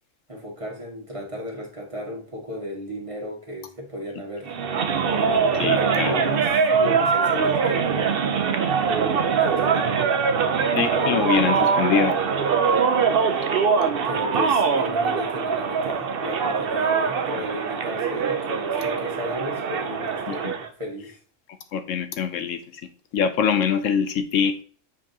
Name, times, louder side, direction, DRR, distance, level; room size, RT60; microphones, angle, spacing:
voice 1, 0.3-4.5 5.0-6.5 6.8-8.5 9.4-10.0 10.9-11.4 14.0-21.2, equal, 25° right, -1 dB, 1.8 m, -34 dB
sound 1, 4.5-20.7, right 6 dB, 55° right, 0.8 m, -23 dB
voice 2, 5.6-6.1 10.8-12.1 20.3-20.5 21.7-22.6 23.1-24.6, left 7 dB, 70° left, 9 dB, 0.9 m, -23 dB
7.5 x 4.7 x 2.8 m, 0.42 s
omnidirectional pair, 1.4 m